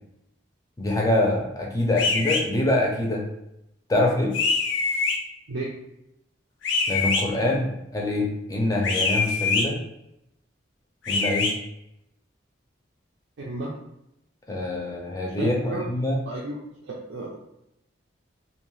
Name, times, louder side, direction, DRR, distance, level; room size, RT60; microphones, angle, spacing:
voice 1, 0.8-3.2 3.9-4.4 6.9-9.8 11.1-11.5 14.5-16.2, left 1 dB, 20° left, -1 dB, 0.4 m, -25 dB
sound 1, 2.0-2.4 4.3-5.2 6.6-7.2 8.8-9.7 11.1-11.5, left 4 dB, 75° left, 0.5 m, -24 dB
voice 2, 13.4-13.7 15.4-15.9 16.3-17.3, right 2 dB, 80° right, -4 dB, 0.5 m, -33 dB
2.6 x 2.2 x 3.1 m, 0.83 s
head